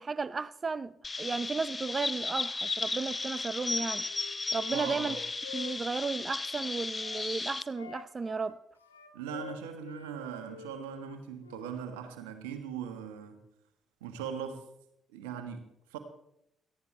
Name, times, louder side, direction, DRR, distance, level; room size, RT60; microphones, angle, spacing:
voice 1, 0.0-4.1 4.5-5.2 5.5-8.6, right 4 dB, 35° right, 0.6 m, -34 dB
Chirp tweet, 1.0-7.6, left 3 dB, 30° left, 0.8 m, -35 dB
Wind instrument woodwind instrument, 3.6-7.3 7.7-10.2 10.4-11.7, left 8 dB, 85° left, 1.0 m, -49 dB
voice 2, 4.7-5.2 9.1-13.4 14.0-14.6 15.1-16.0, right 7 dB, 75° right, 1.5 m, -40 dB
18.0 x 14.0 x 3.3 m
figure-of-eight pair, 40°, 0 cm